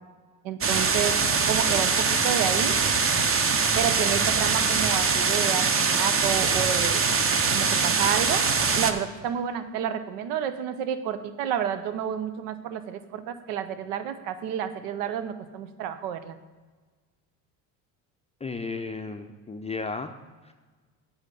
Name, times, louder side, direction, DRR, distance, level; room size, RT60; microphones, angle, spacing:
voice 1, 0.4-1.2 1.5-2.8 3.8-7.0 7.5-8.5 8.7-16.4, right 9 dB, 80° right, 11 dB, 0.8 m, -30 dB
sound 1, 0.6-8.9, right 5 dB, 30° right, 0.8 m, -23 dB
voice 2, 18.4-20.1 20.4-20.5, left 3 dB, 15° left, 5 dB, 0.4 m, -34 dB
8.1 x 5.1 x 6.8 m, 1.4 s
supercardioid pair, 75°, 46 cm